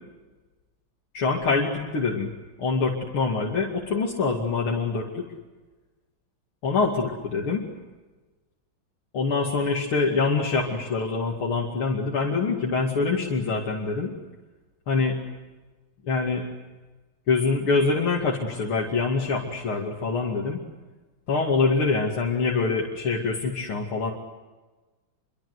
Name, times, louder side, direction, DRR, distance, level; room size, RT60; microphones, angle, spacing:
voice 1, 1.1-2.3 2.6-5.2 6.6-7.6 9.1-14.1 14.9-15.2 16.1-16.4 17.3-20.6 21.3-24.1, left 4 dB, 80° left, -2 dB, 3.4 m, -25 dB
27.5 x 24.0 x 8.1 m, 1.2 s
omnidirectional pair, 2.3 m